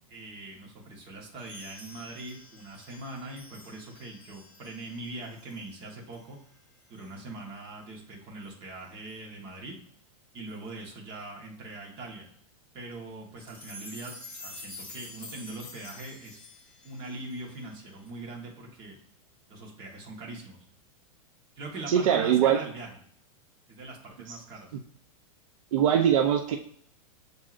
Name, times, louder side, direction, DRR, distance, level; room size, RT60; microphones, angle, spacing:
voice 1, 0.1-6.4 6.9-9.7 10.3-12.3 12.7-16.4 16.8-19.0 19.5-20.7 21.5-23.0 23.7-24.7, right 2 dB, 25° right, -2 dB, 1.2 m, -42 dB
sound 1, 1.4-5.8 6.1-6.3 7.0-7.1 8.4-8.5 9.1-9.2 10.5-10.6 13.4-18.1, left 2 dB, 10° left, 0.9 m, -48 dB
voice 2, 21.9-22.6 24.3-24.4 25.7-26.6, right 9 dB, 65° right, 3 dB, 0.5 m, -22 dB
7.4 x 2.7 x 2.4 m, 0.65 s
supercardioid pair, 160°, 18 cm